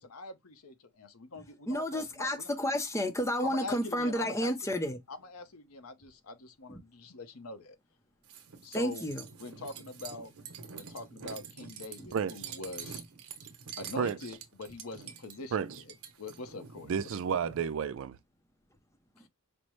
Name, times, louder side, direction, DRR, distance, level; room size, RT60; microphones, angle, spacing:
voice 1, 0.0-2.5 3.4-4.5 5.1-7.8 8.6-9.0 9.4-10.3 10.7-13.0 13.8-15.7 16.2-16.9, left 3 dB, 80° left, 0.8 m, -43 dB
voice 2, 1.3-5.0 6.7-6.8 8.7-9.2 12.0-12.1, equal, 15° left, 0.6 m, -31 dB
sound 1, 8.2-17.7, right 6 dB, 85° right, 0.9 m, -47 dB
voice 3, 12.1-12.5 14.0-14.2 15.5-15.7 16.9-18.2, right 7 dB, 65° right, 0.4 m, -31 dB
5.2 x 2.1 x 3.1 m
head